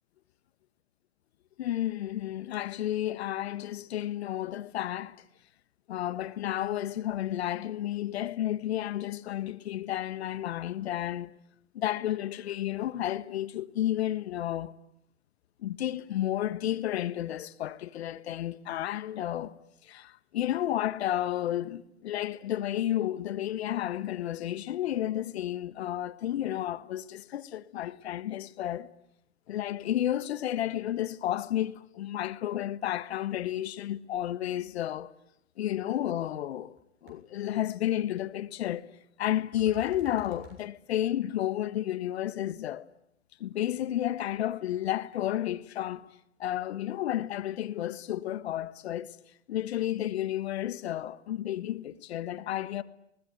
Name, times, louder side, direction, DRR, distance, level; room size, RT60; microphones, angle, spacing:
voice 1, 1.6-5.2 5.9-11.3 11.7-14.7 15.6-19.6 19.8-28.9 29.5-35.1 35.6-36.8 37.0-38.9 39.2-42.8 43.4-46.1 46.4-49.2 49.5-52.8, left 12 dB, 60° left, 1.5 m, -32 dB
sound 1, 36.1-36.2 36.5-36.8 37.1-37.2 39.5-40.6, right 3 dB, 35° right, 7.1 m, -49 dB
28.0 x 20.0 x 9.4 m
hypercardioid pair, 110°, 35 cm